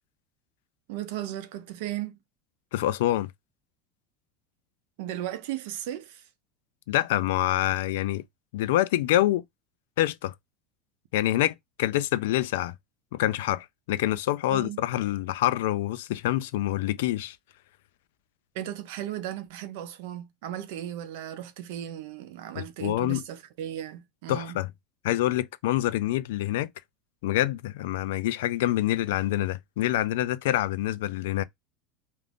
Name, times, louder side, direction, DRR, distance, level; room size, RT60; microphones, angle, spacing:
voice 1, 0.9-2.2 5.0-6.3 14.5-14.8 18.5-24.6, right 12 dB, 75° right, 0.6 m, -36 dB
voice 2, 2.7-3.3 6.9-8.2 8.5-9.4 10.0-10.3 11.1-12.7 13.1-17.4 22.6-23.2 24.3-24.7 25.0-26.7 27.2-31.4, left 14 dB, 85° left, 0.3 m, -26 dB
2.5 x 2.5 x 3.4 m
supercardioid pair, 135°, 0 cm